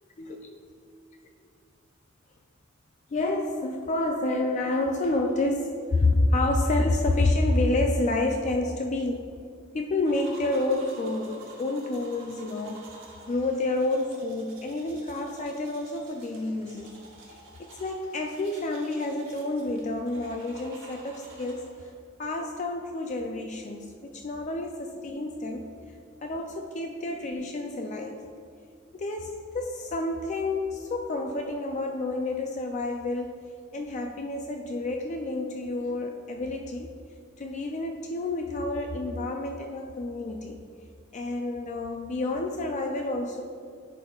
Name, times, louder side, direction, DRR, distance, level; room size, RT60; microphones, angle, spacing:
voice 1, 0.2-0.5 3.1-9.3 9.7-12.8 13.3-16.9 17.3-21.7 22.2-25.7 26.2-28.2 28.9-33.4 33.7-36.9 37.4-40.6 41.1-43.4, left 2 dB, 35° left, 3 dB, 0.3 m, -29 dB
sound 1, 10.0-21.9, right 3 dB, 70° right, 1.3 m, -50 dB
10.0 x 5.5 x 2.3 m, 2.3 s
head